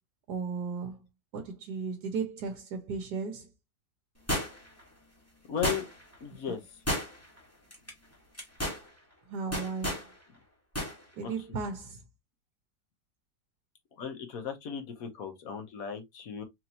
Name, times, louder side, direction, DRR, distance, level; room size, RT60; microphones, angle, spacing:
voice 1, 0.3-1.0 1.3-3.5 9.3-10.1 11.1-12.0, right 4 dB, 75° right, 1.3 m, -35 dB
sound 1, 4.3-4.8 5.6-6.1 6.9-7.4 7.7-7.9 8.3-8.8 9.5-10.1 10.7-10.9 11.3-11.4, equal, 10° left, 1.3 m, -31 dB
voice 2, 5.5-5.9 6.2-6.6 11.2-11.3 14.0-16.4, left 8 dB, 60° left, 1.2 m, -36 dB
4.3 x 2.9 x 2.7 m
omnidirectional pair, 1.8 m